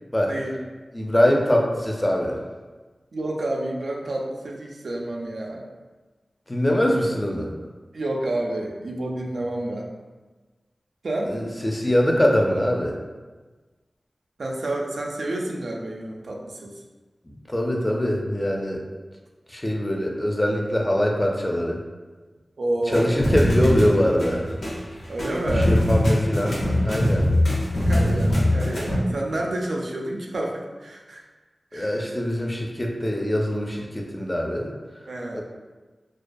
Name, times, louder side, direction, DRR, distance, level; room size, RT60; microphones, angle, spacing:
voice 1, 0.2-0.6 3.1-5.6 7.9-9.9 11.0-11.3 14.4-16.7 22.6-23.3 25.1-25.7 27.9-31.2 31.7-32.1 35.1-35.4, right 1 dB, 90° right, -1 dB, 0.3 m, -29 dB
voice 2, 0.9-2.4 6.5-7.5 11.3-13.0 17.2-18.8 19.5-21.8 22.9-24.5 25.5-27.3 31.7-34.7 35.3-35.4, equal, 20° left, 0 dB, 0.3 m, -23 dB
sound 1, 22.9-29.0, left 1 dB, 90° left, 0.6 m, -22 dB
2.3 x 2.2 x 2.5 m, 1.3 s
wide cardioid pair, 85°, 0 cm